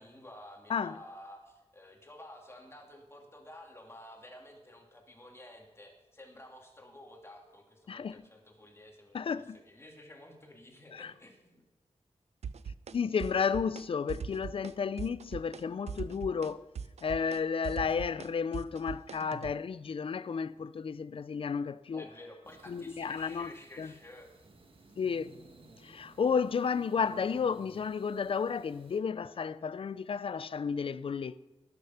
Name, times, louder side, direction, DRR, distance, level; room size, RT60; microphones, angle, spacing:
voice 1, 0.0-11.6 21.9-24.3, left 1 dB, 20° left, 2.6 m, -52 dB
voice 2, 7.9-8.2 9.1-9.6 10.9-11.1 12.9-16.7 17.0-22.0 22.7-23.9 25.0-25.4 25.8-31.4, left 6 dB, 50° left, 0.5 m, -32 dB
sound 1, 12.4-12.9 13.2-13.8 14.1-14.7 15.0-15.6 15.9-19.5, right 6 dB, 65° right, 0.6 m, -40 dB
sound 2, 22.4-29.0, right 2 dB, 50° right, 1.8 m, -58 dB
19.5 x 6.9 x 5.8 m
wide cardioid pair, 95°, 12 cm